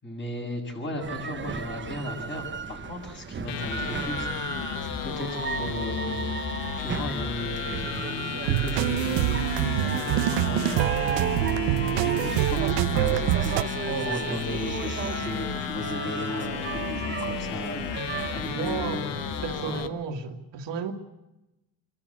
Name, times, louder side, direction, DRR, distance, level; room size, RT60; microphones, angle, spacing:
voice 1, 0.0-6.2 6.7-10.8 12.0-13.8 14.0-19.8, left 1 dB, 25° left, 7.6 m, -36 dB
sound 1, 1.0-19.8, right 6 dB, 25° right, 1.0 m, -35 dB
sound 2, 3.5-19.9, left 9 dB, 65° left, 1.5 m, -33 dB
sound 3, 8.4-13.6, right 15 dB, 90° right, 0.9 m, -25 dB
voice 2, 18.6-19.0 19.4-20.9, right 6 dB, 70° right, 2.2 m, -32 dB
27.0 x 13.5 x 8.6 m
cardioid pair, 120°, 44 cm